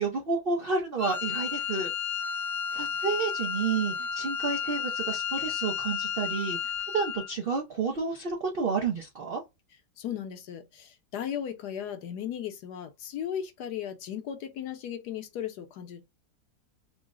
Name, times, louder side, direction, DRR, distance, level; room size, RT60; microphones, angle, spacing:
voice 1, 0.0-1.9 2.7-6.6 6.9-9.4, right 4 dB, 65° right, 0.5 m, -30 dB
Wind instrument woodwind instrument, 1.0-7.3, left 7 dB, 50° left, 0.8 m, -32 dB
voice 2, 10.0-16.0, left 9 dB, 70° left, 1.2 m, -36 dB
3.8 x 2.1 x 3.6 m
omnidirectional pair, 2.0 m